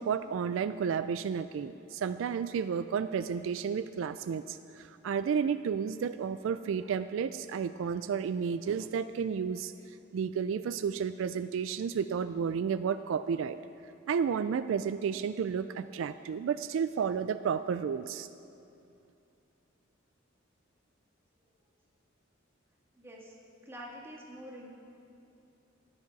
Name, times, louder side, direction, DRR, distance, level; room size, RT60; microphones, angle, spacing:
voice 1, 0.0-9.7 10.1-13.6 14.1-18.3, right 7 dB, 75° right, 12 dB, 0.3 m, -32 dB
voice 2, 22.9-23.4 23.6-24.7, equal, 15° right, -5 dB, 2.0 m, -46 dB
14.0 x 11.0 x 4.1 m, 2.7 s
head